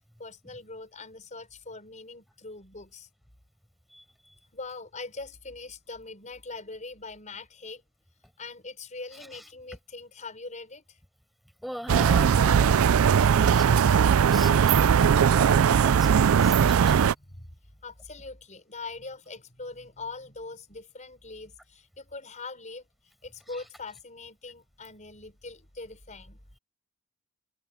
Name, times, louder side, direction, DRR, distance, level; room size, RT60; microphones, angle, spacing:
voice 1, 0.2-3.1 4.5-7.8 8.4-11.0 16.8-17.5 17.8-22.9 23.2-26.4, left 3 dB, 35° left, 5.2 m, -42 dB
voice 2, 3.9-4.3 9.3-9.4 11.6-17.0 23.5-23.6, equal, ahead, 6.3 m, -41 dB
sound 1, 11.9-17.1, right 7 dB, 85° right, 0.4 m, -20 dB
head